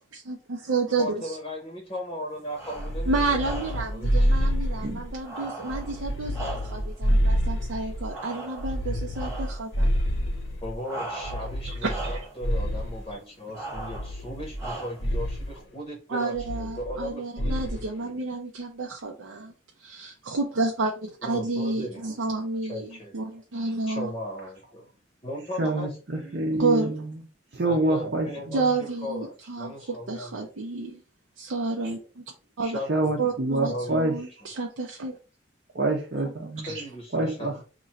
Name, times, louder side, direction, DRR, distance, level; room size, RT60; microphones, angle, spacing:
voice 1, 0.1-1.1 3.1-9.9 11.6-12.1 16.1-19.5 19.8-24.1 26.6-26.9 28.5-29.7 30.1-31.0 31.4-32.2 32.6-32.8 33.2-35.2 36.6-36.8, right 3 dB, 90° right, 0.6 m, -30 dB
voice 2, 1.0-4.6 10.6-18.2 21.2-22.0 22.6-23.1 23.9-24.8 25.2-26.5 27.6-30.5 32.6-33.1 33.7-34.0 36.7-37.6, left 1 dB, 25° left, 0.8 m, -37 dB
sound 1, 2.5-3.0 3.3-4.0 5.2-7.0 8.1-8.8 9.1-9.7 10.8-11.6 11.8-12.4 13.5-14.1 14.6-15.2, right 2 dB, 15° right, 1.2 m, -38 dB
sound 2, 2.8-5.2 5.7-8.1 8.6-10.8 11.2-13.1 13.7-14.7 15.0-15.5 16.4-17.1 17.4-17.8, equal, 75° left, 0.9 m, -28 dB
voice 3, 25.5-27.2 27.5-28.8 32.8-34.3 35.7-36.7 37.1-37.6, right 2 dB, 55° right, 0.7 m, -27 dB
3.0 x 2.6 x 4.1 m
head